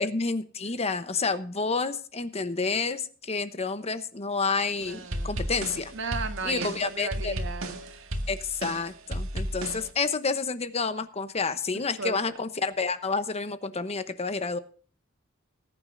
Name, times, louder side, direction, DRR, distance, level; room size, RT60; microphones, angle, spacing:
voice 1, 0.0-5.9 6.4-7.3 8.3-14.6, left 4 dB, 30° left, 0.9 m, -29 dB
sound 1, 4.8-9.9, right 1 dB, 90° right, 1.9 m, -34 dB
voice 2, 4.9-5.3 5.9-8.1 11.7-12.1, right 4 dB, 65° right, 1.5 m, -35 dB
19.5 x 9.7 x 2.6 m
head